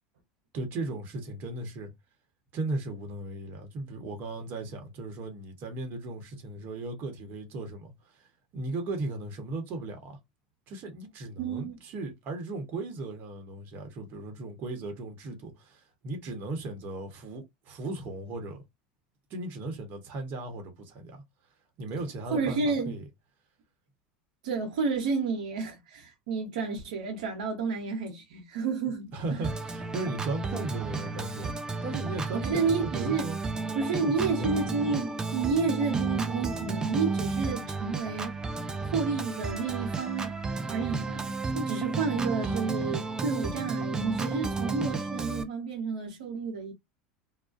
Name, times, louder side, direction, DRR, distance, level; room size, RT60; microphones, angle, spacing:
voice 1, 0.5-1.9 2.5-8.3 8.5-10.2 10.7-18.6 19.3-21.2 21.8-23.0 29.1-31.5 31.8-33.4 34.0-34.7 42.4-42.6, right 2 dB, 50° right, 0.9 m, -36 dB
voice 2, 11.4-11.8 22.3-22.9 24.4-29.5 32.4-33.3 33.7-38.4 38.8-40.3 40.6-46.7, right 4 dB, 80° right, 0.8 m, -30 dB
Organ, 29.4-45.4, right 4 dB, 15° right, 0.4 m, -32 dB
2.3 x 2.1 x 2.5 m
supercardioid pair, 105°, 4 cm